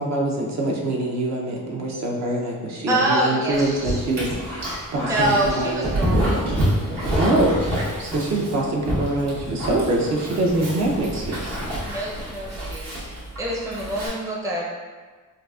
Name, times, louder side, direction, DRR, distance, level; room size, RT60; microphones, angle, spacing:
voice 1, 0.0-6.0 7.2-11.6, right 2 dB, 55° right, -2 dB, 0.6 m, -24 dB
voice 2, 2.9-4.0 5.0-6.4 6.9-7.2 11.8-13.1 13.4-14.7, right 1 dB, 10° right, -4 dB, 0.5 m, -26 dB
Dog, 3.5-14.1, right 1 dB, 90° right, 1.2 m, -27 dB
3.8 x 2.4 x 2.3 m, 1.4 s
cardioid pair, 105°, 33 cm